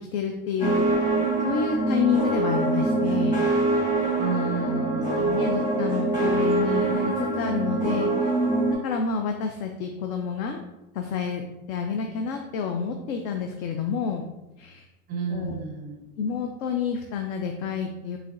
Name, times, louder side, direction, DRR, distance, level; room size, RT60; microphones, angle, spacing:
voice 1, 0.1-0.9 1.4-3.4 5.2-8.3 8.8-10.6 10.9-11.4 11.7-14.2 14.6-14.8 15.3-15.6 16.2-18.2, left 6 dB, 65° left, 4 dB, 0.6 m, -29 dB
sound 1, 0.6-8.7, right 2 dB, 15° left, 1.1 m, -24 dB
voice 2, 4.1-5.9 15.1-16.1, right 4 dB, 20° right, 2 dB, 0.4 m, -32 dB
5.0 x 3.2 x 2.5 m, 0.97 s
hypercardioid pair, 120°, 45 cm